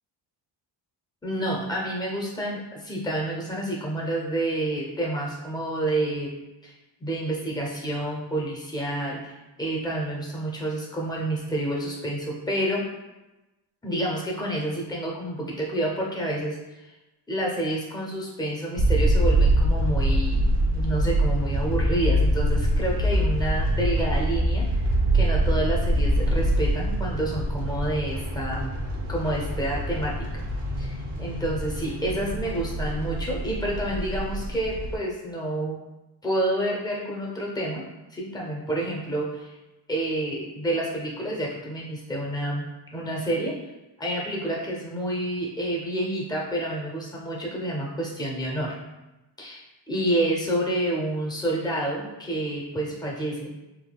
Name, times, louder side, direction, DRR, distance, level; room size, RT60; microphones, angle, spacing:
voice 1, 1.2-6.4 6.6-6.7 7.0-12.8 13.8-16.6 17.3-24.8 25.1-30.5 30.8-35.8 36.2-37.8 38.1-39.5 39.9-43.6 44.0-48.8 49.4-49.6 49.9-53.5, right 1 dB, 10° left, -3 dB, 0.6 m, -29 dB
sound 1, 18.8-35.0, right 1 dB, 60° right, 0.7 m, -24 dB
3.5 x 2.7 x 2.2 m, 1.0 s
wide cardioid pair, 140°, 45 cm